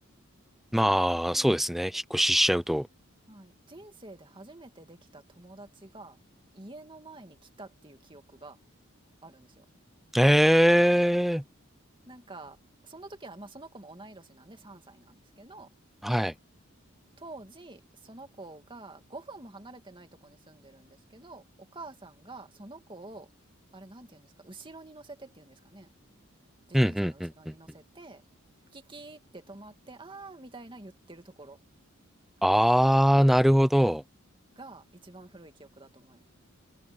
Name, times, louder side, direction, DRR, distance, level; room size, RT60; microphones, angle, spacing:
voice 1, 0.7-2.9 10.1-11.4 16.0-16.3 26.7-27.5 32.4-34.0, equal, ahead, 0.5 m, -22 dB
voice 2, 3.3-6.2 6.5-8.6 9.2-9.6 12.1-12.6 12.8-15.7 17.2-23.3 23.7-25.9 26.7-28.2 28.7-31.6 34.6-36.2, right 2 dB, 25° right, 2.4 m, -48 dB
head